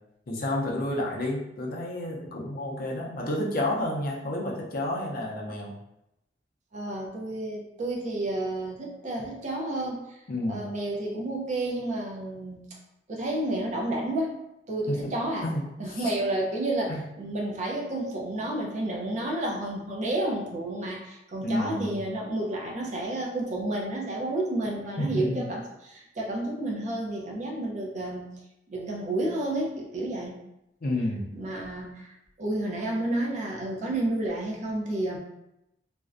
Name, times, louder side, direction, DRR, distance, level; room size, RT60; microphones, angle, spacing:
voice 1, 0.3-5.7 10.3-10.6 14.9-15.0 15.4-15.6 15.9-16.1 16.9-17.0 21.4-22.1 25.0-25.5 30.8-31.3, left 1 dB, 55° left, -2 dB, 0.5 m, -30 dB
voice 2, 6.7-10.2 10.5-12.7 13.1-14.4 14.7-15.5 15.8-28.3 28.7-30.4 31.4-35.2, right 1 dB, 45° right, -2 dB, 0.5 m, -31 dB
2.5 x 2.1 x 2.4 m, 0.86 s
head